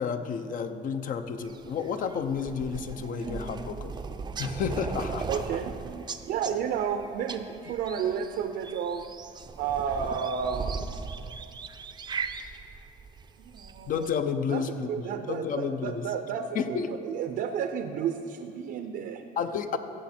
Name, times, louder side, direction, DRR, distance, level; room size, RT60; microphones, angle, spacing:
voice 1, 0.0-4.0 4.4-5.4 13.9-16.1 16.5-16.9 19.4-19.8, left 6 dB, 55° left, 9 dB, 0.7 m, -31 dB
sound 1, 1.4-14.1, right 5 dB, 25° right, 0.5 m, -38 dB
voice 2, 5.3-9.1 9.6-10.9 13.4-14.1 14.5-14.6 14.9-19.2, right 7 dB, 75° right, 7 dB, 0.6 m, -32 dB
15.5 x 7.4 x 4.4 m, 2.6 s
cardioid pair, 110°, 17 cm